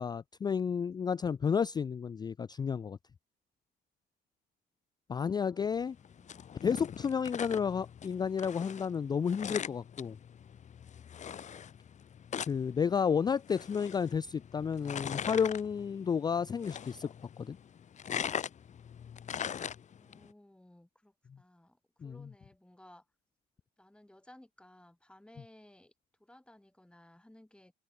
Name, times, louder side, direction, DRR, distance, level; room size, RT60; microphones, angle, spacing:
voice 1, 0.0-3.0 5.1-6.0 6.6-10.2 12.5-17.1 17.4-17.6 22.0-22.3, left 6 dB, 25° left, 0.3 m, -31 dB
voice 2, 5.1-6.5 19.9-23.1 23.8-25.9 26.2-27.7, left 1 dB, 5° left, 5.9 m, -59 dB
sound 1, 5.8-20.3, left 8 dB, 45° left, 1.3 m, -42 dB
cardioid pair, 120°, 17 cm